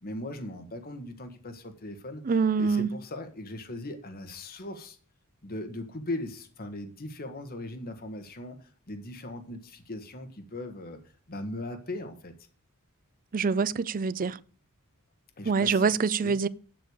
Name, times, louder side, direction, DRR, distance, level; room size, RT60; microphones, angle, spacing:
voice 1, 0.0-2.2 2.6-5.0 5.4-12.3 15.4-15.8 16.2-16.3, left 1 dB, 45° left, 1.6 m, -39 dB
voice 2, 2.2-2.9 13.3-14.4 15.5-16.5, right 5 dB, 40° right, 0.5 m, -25 dB
7.8 x 6.7 x 8.2 m
head